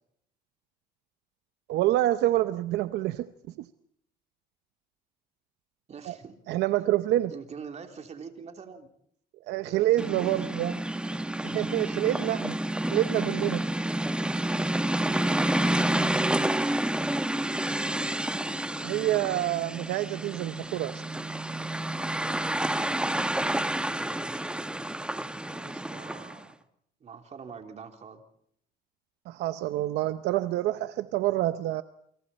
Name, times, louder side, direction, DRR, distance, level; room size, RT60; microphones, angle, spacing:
voice 1, 1.7-3.3 6.1-6.2 6.5-7.3 9.5-10.7 11.4-12.6 12.9-13.6 18.8-21.0 29.3-31.8, right 15 dB, 85° right, 0.8 m, -27 dB
voice 2, 5.9-6.3 7.3-8.9 9.6-10.6 25.5-26.5 27.0-28.2, right 6 dB, 40° right, 3.4 m, -44 dB
sound 1, 10.0-26.4, right 1 dB, 5° right, 1.0 m, -29 dB
28.5 x 25.0 x 4.3 m
cardioid pair, 110°, 17 cm